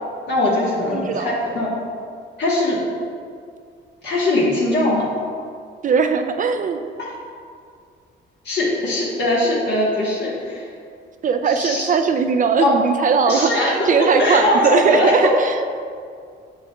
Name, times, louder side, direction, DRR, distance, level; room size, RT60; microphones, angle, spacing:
voice 1, 0.3-1.8 2.4-2.8 4.0-5.0 7.0-7.1 8.4-10.7 11.5-11.9 12.6-12.7 13.3-13.9 14.2-15.3, left 2 dB, 60° left, -6 dB, 1.3 m, -20 dB
voice 2, 0.9-1.3 5.8-6.8 11.2-15.8, right 5 dB, 40° right, 7 dB, 0.4 m, -19 dB
7.8 x 5.9 x 2.3 m, 2.2 s
cardioid pair, 90°, 20 cm